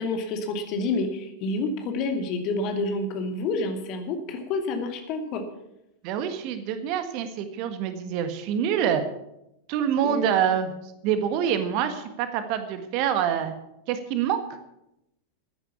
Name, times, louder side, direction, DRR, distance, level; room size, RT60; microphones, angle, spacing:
voice 1, 0.0-5.4 10.0-10.4, left 3 dB, 40° left, 5 dB, 2.5 m, -28 dB
voice 2, 6.0-9.0 9.7-10.7 11.0-13.5 13.9-14.4, right 9 dB, 45° right, 9 dB, 1.6 m, -26 dB
14.0 x 10.0 x 7.1 m, 0.84 s
figure-of-eight pair, 90°, 0 cm